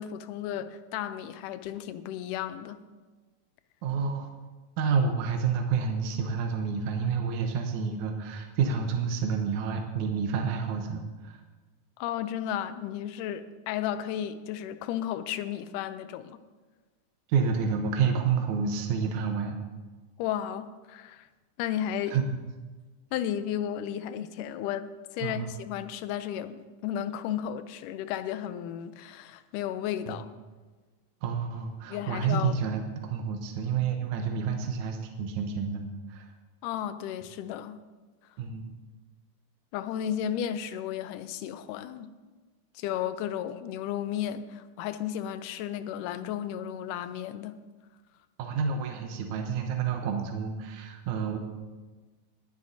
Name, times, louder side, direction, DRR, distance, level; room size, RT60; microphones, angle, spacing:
voice 1, 0.0-2.8 12.0-16.4 20.2-21.3 21.6-22.2 23.1-24.9 25.1-30.3 31.9-32.6 36.6-37.8 39.7-42.1 42.8-47.5, left 10 dB, 85° left, 12 dB, 2.2 m, -33 dB
voice 2, 3.8-4.3 4.8-11.4 17.3-19.6 22.1-22.4 25.2-25.5 30.1-30.2 31.2-36.3 38.4-38.7 48.4-51.4, right 6 dB, 75° right, 3 dB, 2.2 m, -29 dB
20.5 x 10.0 x 2.7 m, 1.3 s
omnidirectional pair, 3.7 m